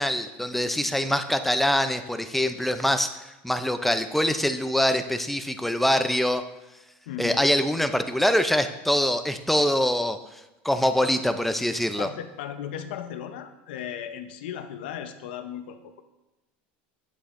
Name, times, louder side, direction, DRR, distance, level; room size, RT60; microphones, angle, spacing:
voice 1, 0.0-6.4 7.2-10.2 10.6-12.1, left 1 dB, 5° left, 8 dB, 0.4 m, -24 dB
voice 2, 7.1-7.4 11.0-11.1 12.0-16.0, left 9 dB, 90° left, 8 dB, 0.7 m, -36 dB
9.8 x 8.3 x 2.6 m, 1.0 s
supercardioid pair, 135°, 5 cm